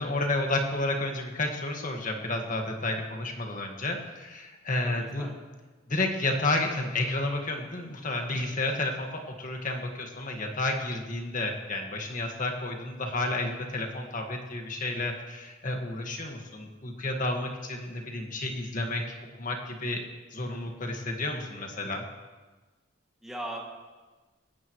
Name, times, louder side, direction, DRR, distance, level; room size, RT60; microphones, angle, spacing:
voice 1, 0.0-5.3 5.9-20.0 20.3-22.0, left 2 dB, 40° left, 2 dB, 1.7 m, -31 dB
voice 2, 4.8-5.4 23.2-23.6, right 1 dB, ahead, -4 dB, 2.2 m, -38 dB
20.5 x 17.0 x 3.2 m, 1.3 s
head